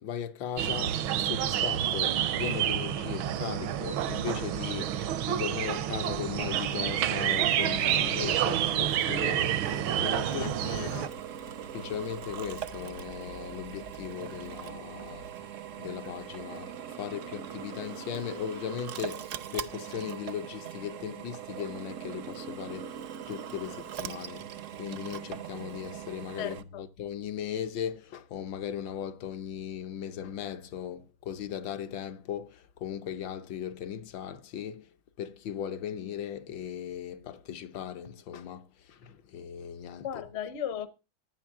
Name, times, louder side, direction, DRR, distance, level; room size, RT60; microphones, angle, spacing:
voice 1, 0.0-10.9 11.7-15.3 15.8-34.9 35.2-40.1, left 9 dB, 70° left, 1.5 m, -38 dB
sound 1, 0.6-11.1, right 11 dB, 80° right, 1.6 m, -29 dB
Drill, 8.2-26.6, right 9 dB, 65° right, 0.7 m, -41 dB
sound 2, 9.1-18.9 19.4-19.6, left 1 dB, 90° left, 3.9 m, -52 dB
voice 2, 10.2-11.1 26.4-26.8 40.0-40.9, left 9 dB, 45° left, 0.9 m, -37 dB
15.0 x 10.5 x 3.6 m
omnidirectional pair, 2.2 m